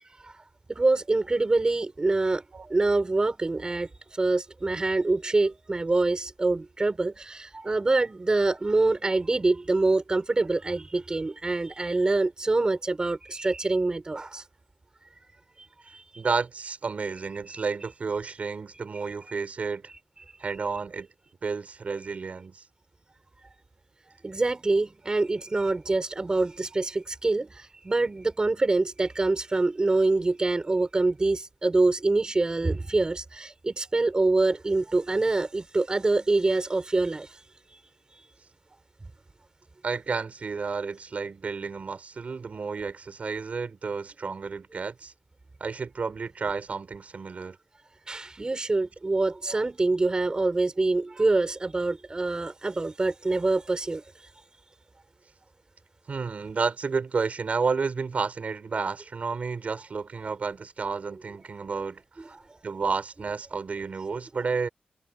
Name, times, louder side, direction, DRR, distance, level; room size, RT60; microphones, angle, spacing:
voice 1, 0.7-14.4 15.9-16.0 17.5-17.6 18.9-19.4 20.2-20.3 22.1-22.2 24.2-37.4 48.1-54.0 62.2-62.4, right 2 dB, 25° right, 3.7 m, -25 dB
voice 2, 16.2-19.9 20.4-21.1 21.4-22.6 39.8-45.1 45.6-47.6 49.5-49.6 56.1-62.0 62.6-64.7, right 5 dB, 50° right, 5.4 m, -31 dB
wide cardioid pair, 135°, 3 cm